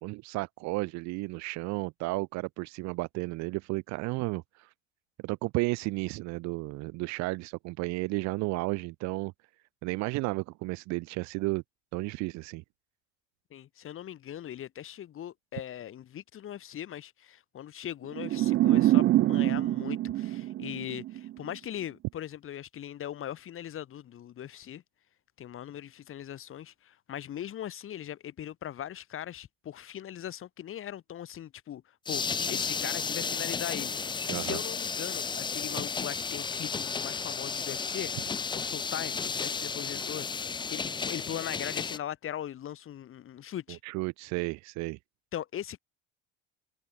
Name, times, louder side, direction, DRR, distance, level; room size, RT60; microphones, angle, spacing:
voice 1, 0.0-4.7 5.2-9.3 9.8-11.6 11.9-12.6 34.3-34.6 43.7-45.0, right 23 dB, 65° right, 2.0 m, -33 dB
voice 2, 13.5-24.8 25.4-31.8 32.1-38.1 38.5-43.8 45.3-45.8, left 11 dB, 45° left, 4.3 m, -40 dB
sound 1, 18.2-21.3, right 15 dB, 40° right, 0.4 m, -25 dB
sound 2, 32.1-42.0, left 5 dB, 15° left, 0.5 m, -33 dB
supercardioid pair, 100°, 30 cm